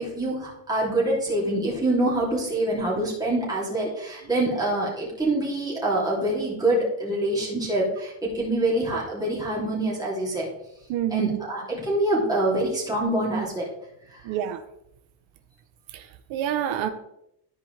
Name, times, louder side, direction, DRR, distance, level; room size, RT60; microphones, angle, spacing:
voice 1, 0.0-10.5 11.1-13.6, right 1 dB, 10° right, -6 dB, 2.7 m, -25 dB
voice 2, 10.9-11.4 14.2-14.6 15.9-16.9, right 11 dB, 75° right, 7 dB, 0.8 m, -28 dB
13.0 x 4.9 x 3.2 m, 0.80 s
cardioid pair, 160°, 47 cm